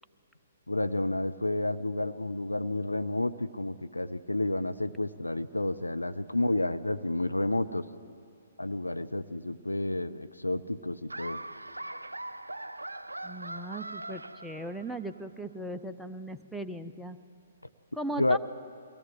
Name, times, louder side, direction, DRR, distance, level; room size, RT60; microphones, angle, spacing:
voice 1, 0.7-7.8 8.6-11.4 18.2-18.4, left 2 dB, 80° left, 10 dB, 0.7 m, -30 dB
Laughter, 11.1-15.1, right 1 dB, 80° right, 0.5 m, -41 dB
voice 2, 13.2-17.2 17.9-18.4, right 1 dB, ahead, 6 dB, 0.6 m, -38 dB
23.0 x 17.0 x 7.8 m, 2.5 s
figure-of-eight pair, 125°, 0 cm